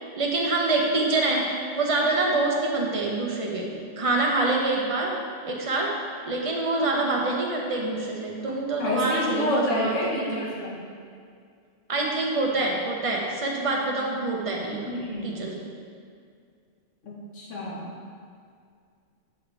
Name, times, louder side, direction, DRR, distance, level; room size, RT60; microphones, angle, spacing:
voice 1, 0.2-5.2 5.4-6.0 6.3-10.4 11.9-15.7, right 2 dB, 30° right, -1 dB, 0.9 m, -26 dB
voice 2, 8.8-10.8 14.9-15.3 17.0-17.8, left 1 dB, 75° left, -5 dB, 1.7 m, -28 dB
11.0 x 4.5 x 3.4 m, 2.2 s
omnidirectional pair, 1.3 m